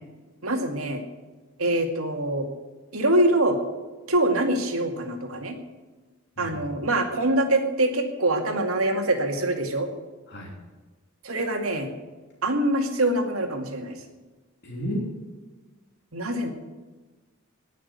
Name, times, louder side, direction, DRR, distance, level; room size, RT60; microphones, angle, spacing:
voice 1, 0.4-1.0 1.6-2.5 2.9-3.6 4.1-5.5 6.4-9.9 11.2-11.9 12.4-14.0 16.1-16.5, right 1 dB, 80° right, 4 dB, 2.3 m, -24 dB
voice 2, 6.4-6.8 10.3-10.5 14.6-15.1, equal, 55° left, -2 dB, 3.1 m, -32 dB
19.0 x 6.6 x 8.2 m, 1.2 s
head